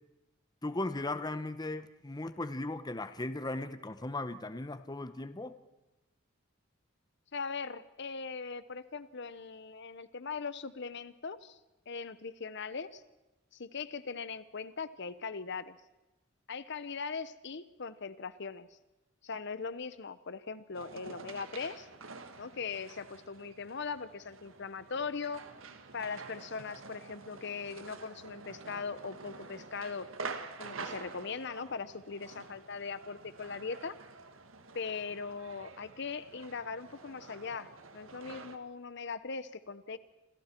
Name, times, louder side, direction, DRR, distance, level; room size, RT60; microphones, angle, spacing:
voice 1, 0.6-5.6, left 2 dB, 20° left, 11 dB, 0.8 m, -37 dB
voice 2, 7.3-11.6 11.9-13.0 13.5-15.8 16.5-18.7 19.2-21.9 22.4-25.4 25.9-30.1 30.6-34.0 34.7-40.0, left 5 dB, 60° left, 14 dB, 0.9 m, -40 dB
sound 1, 20.7-38.6, right 4 dB, 80° right, 1.6 m, -48 dB
28.5 x 26.5 x 4.5 m, 1.0 s
head